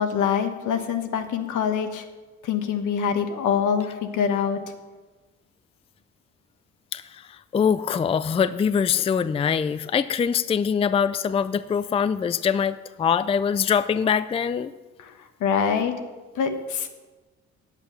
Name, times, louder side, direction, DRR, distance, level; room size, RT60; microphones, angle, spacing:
voice 1, 0.0-2.0 2.4-4.6 15.0-15.1 15.4-15.9 16.4-16.9, left 7 dB, 80° left, 7 dB, 1.2 m, -24 dB
voice 2, 7.5-14.7, left 7 dB, 20° left, 14 dB, 0.3 m, -23 dB
8.8 x 8.2 x 6.6 m, 1.2 s
cardioid pair, 90°, 30 cm